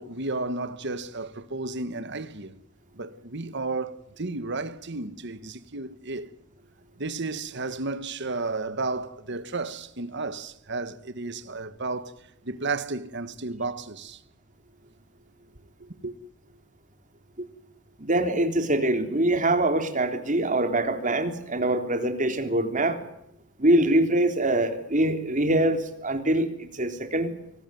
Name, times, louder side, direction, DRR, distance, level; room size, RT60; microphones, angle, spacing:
voice 1, 0.0-2.6 2.9-6.3 7.0-12.1 12.4-14.2 16.0-16.1, right 3 dB, 60° right, 1.6 m, -33 dB
voice 2, 18.0-23.0 23.6-27.3, right 1 dB, 40° right, 3.5 m, -24 dB
24.5 x 18.5 x 9.4 m
head